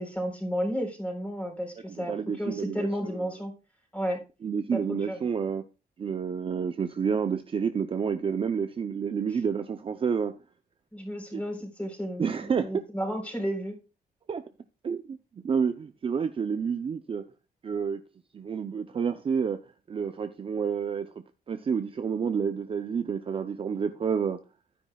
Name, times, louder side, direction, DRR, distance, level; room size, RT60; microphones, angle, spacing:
voice 1, 0.0-3.5 3.9-4.2 4.7-5.3 9.3-9.4 10.9-13.8, equal, 10° left, 3.8 m, -32 dB
voice 2, 2.0-3.3 4.4-5.6 6.0-10.3 11.3-11.4 12.2-12.7 14.3-14.4 14.8-15.2 15.4-17.2 17.6-18.0 18.3-19.6 19.9-21.1 21.5-24.4, right 6 dB, 35° right, 0.6 m, -29 dB
12.0 x 9.8 x 2.3 m
wide cardioid pair, 180°, 16 cm